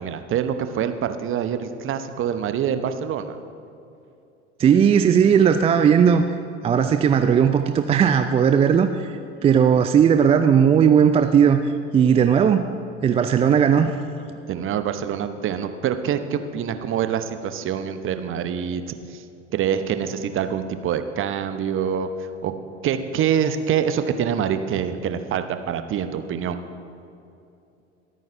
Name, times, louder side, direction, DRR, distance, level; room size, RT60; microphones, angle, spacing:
voice 1, 0.0-3.4 14.5-19.2 19.5-22.5 22.8-26.6, right 8 dB, 35° right, 9 dB, 0.8 m, -25 dB
voice 2, 4.6-6.3 6.6-11.6 11.9-12.7 13.0-13.9, right 7 dB, 20° right, 9 dB, 0.3 m, -17 dB
23.5 x 9.2 x 2.6 m, 2.7 s
figure-of-eight pair, 70°, 35 cm